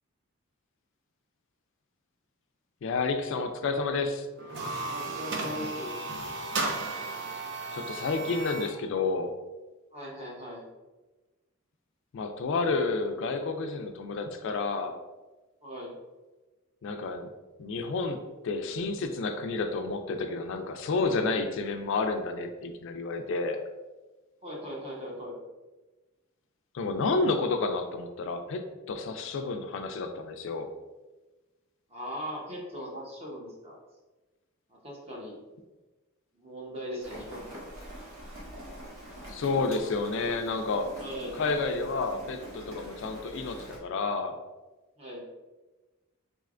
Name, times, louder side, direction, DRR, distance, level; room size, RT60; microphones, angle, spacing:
voice 1, 2.8-4.3 7.7-9.3 12.1-15.0 16.8-17.3 17.6-23.6 26.7-30.7 39.3-40.9 41.3-44.4, left 3 dB, 60° left, 7 dB, 0.3 m, -30 dB
sound 1, 4.4-8.8, right 3 dB, 55° right, 0.5 m, -34 dB
voice 2, 4.8-5.9 9.9-10.7 15.6-15.9 24.4-25.4 31.9-33.8 34.7-35.4 36.3-37.7 41.0-41.4 45.0-45.2, equal, 30° right, -3 dB, 0.8 m, -39 dB
Rain, 37.0-43.8, right 1 dB, 85° right, 1.3 m, -45 dB
3.9 x 3.2 x 2.4 m, 1.2 s
head